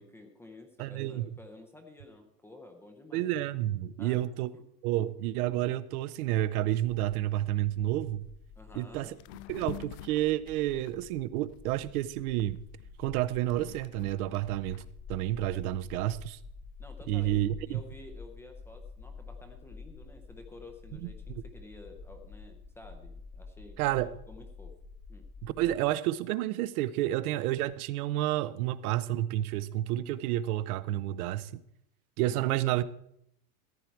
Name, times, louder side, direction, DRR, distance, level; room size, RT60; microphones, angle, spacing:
voice 1, 0.0-3.3 4.0-4.2 4.5-4.6 4.9-5.0 8.6-9.1 16.8-23.9 24.3-24.7 25.1-25.2 32.3-32.6, left 2 dB, 5° left, 0.5 m, -51 dB
voice 2, 0.8-1.3 3.1-4.5 4.8-8.3 8.7-9.2 9.5-12.6 13.0-14.8 15.1-16.4 17.1-17.8 21.0-21.4 23.8-24.1 25.4-31.6 32.2-32.8, right 14 dB, 65° right, 0.8 m, -30 dB
sound 1, 8.2-8.3 8.7-8.9 9.2-11.9 12.4-14.9, left 14 dB, 55° left, 0.5 m, -46 dB
sound 2, 8.3-25.8, left 4 dB, 25° left, 1.1 m, -49 dB
14.5 x 9.8 x 4.6 m
supercardioid pair, 170°, 48 cm